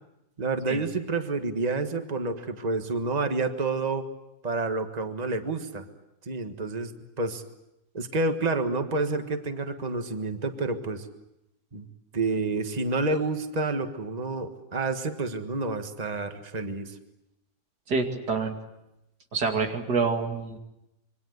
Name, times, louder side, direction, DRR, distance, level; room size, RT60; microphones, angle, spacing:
voice 1, 0.4-4.1 4.4-5.9 6.2-7.4 7.9-11.1 11.7-11.9 12.1-17.0, right 3 dB, 25° right, 7 dB, 1.6 m, -29 dB
voice 2, 17.9-18.5 19.3-20.6, right 4 dB, 90° right, 4 dB, 3.1 m, -27 dB
27.0 x 24.0 x 8.1 m, 0.87 s
omnidirectional pair, 1.7 m